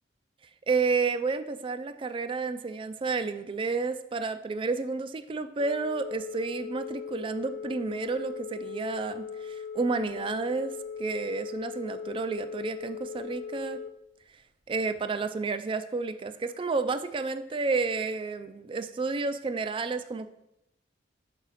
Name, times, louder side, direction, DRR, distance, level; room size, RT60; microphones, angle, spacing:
voice 1, 0.7-13.8 14.7-20.3, right 4 dB, 30° right, 11 dB, 0.3 m, -31 dB
Telephone, 5.6-13.9, left 6 dB, 85° left, 0.6 m, -39 dB
6.2 x 4.8 x 4.1 m, 0.85 s
head